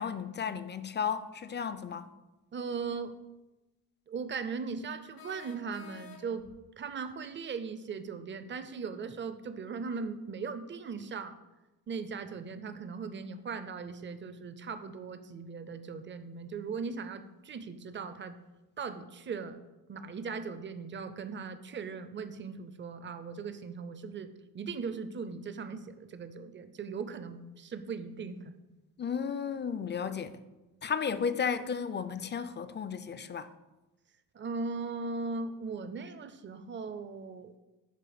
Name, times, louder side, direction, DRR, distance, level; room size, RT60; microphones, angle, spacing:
voice 1, 0.0-2.1 29.0-30.3 30.8-33.5, left 6 dB, 30° left, 0.4 m, -33 dB
voice 2, 2.5-3.2 4.1-6.5 6.8-11.3 11.9-18.4 18.8-19.6 19.9-28.4 34.3-37.6, right 5 dB, 30° right, 0.5 m, -39 dB
sound 1, 2.8-2.9 5.2-6.6, left 6 dB, 65° left, 0.9 m, -51 dB
7.5 x 3.3 x 6.0 m
cardioid pair, 95°, 38 cm